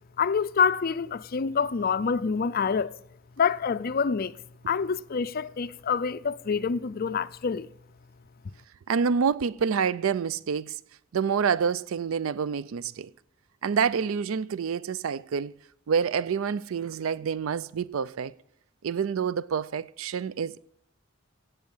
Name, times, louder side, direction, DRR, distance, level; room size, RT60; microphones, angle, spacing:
voice 1, 0.2-3.0 3.4-4.3 4.7-7.7, left 6 dB, 45° left, 0.5 m, -26 dB
voice 2, 8.9-10.8 11.1-13.1 13.6-15.5 15.9-18.3 18.8-20.6, right 6 dB, 85° right, 0.4 m, -27 dB
17.0 x 8.2 x 7.2 m
head